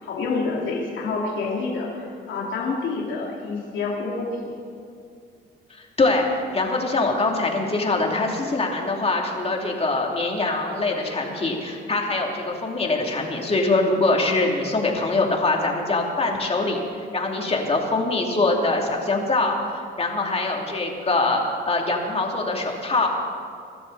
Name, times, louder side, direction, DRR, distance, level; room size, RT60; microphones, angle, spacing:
voice 1, 0.0-4.3, left 4 dB, 75° left, -3 dB, 2.6 m, -28 dB
voice 2, 5.8-16.8 17.1-19.6 20.0-23.1, left 2 dB, 30° left, 0 dB, 2.9 m, -23 dB
23.5 x 12.5 x 4.1 m, 2.3 s
cardioid pair, 90°, 20 cm